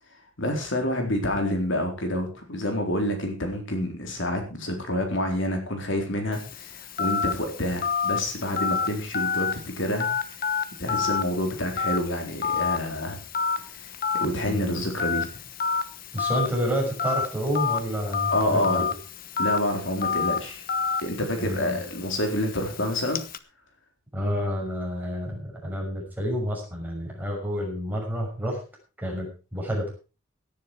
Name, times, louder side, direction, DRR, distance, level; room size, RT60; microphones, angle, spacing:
voice 1, 0.4-10.4 10.8-13.2 13.7-13.9 14.2-15.4 18.3-18.9 19.4-20.6 21.0-23.2, left 1 dB, 60° left, 4 dB, 3.9 m, -28 dB
Telephone, 6.3-23.4, left 6 dB, 45° left, 1.0 m, -30 dB
voice 2, 14.4-14.7 16.1-18.9 21.4-21.8 24.1-28.6 29.0-29.9, equal, 10° right, -1 dB, 6.1 m, -29 dB
17.5 x 10.0 x 4.6 m, 0.33 s
head